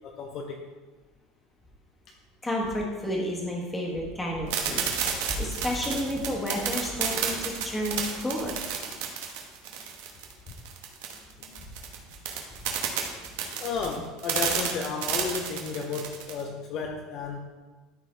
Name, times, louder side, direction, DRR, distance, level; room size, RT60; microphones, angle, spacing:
voice 1, 0.0-0.6 8.4-9.1 10.5-10.6 11.4-11.7 13.6-17.4, left 5 dB, 35° left, 2 dB, 0.6 m, -34 dB
voice 2, 2.4-4.9 5.3-8.6 12.5-12.6, left 1 dB, 10° left, -2 dB, 1.3 m, -31 dB
sound 1, 4.5-16.4, right 7 dB, 80° right, 1.4 m, -30 dB
13.0 x 4.5 x 3.3 m, 1.3 s
cardioid pair, 170°, 0 cm